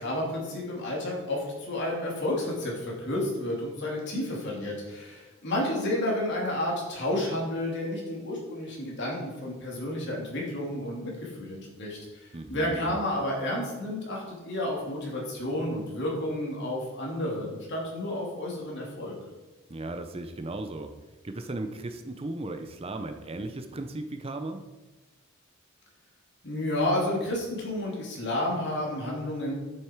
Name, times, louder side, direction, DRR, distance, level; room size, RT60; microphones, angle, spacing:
voice 1, 0.0-19.2 26.4-29.5, left 1 dB, 55° left, -3 dB, 3.0 m, -31 dB
voice 2, 12.3-13.0 19.7-20.9 21.2-24.6, right 2 dB, 25° right, 7 dB, 0.6 m, -36 dB
8.8 x 8.0 x 4.6 m, 1.2 s
head